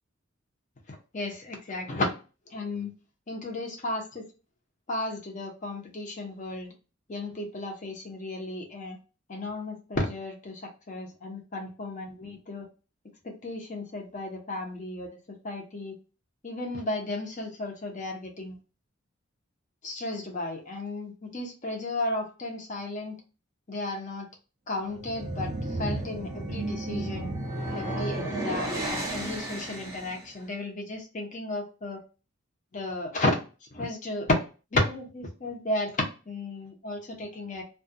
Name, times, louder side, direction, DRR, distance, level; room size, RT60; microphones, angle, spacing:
voice 1, 0.9-2.2 2.5-2.9 3.3-4.3 4.9-6.7 7.1-9.0 9.3-12.7 13.2-16.0 16.4-18.6 19.8-23.2 23.7-24.3 24.7-27.4 27.7-32.0 32.7-34.3 34.7-37.6, left 2 dB, 40° left, 1 dB, 0.7 m, -33 dB
sound 1, 24.8-30.3, right 1 dB, 15° right, 0.7 m, -33 dB
2.3 x 2.2 x 2.5 m, 0.33 s
head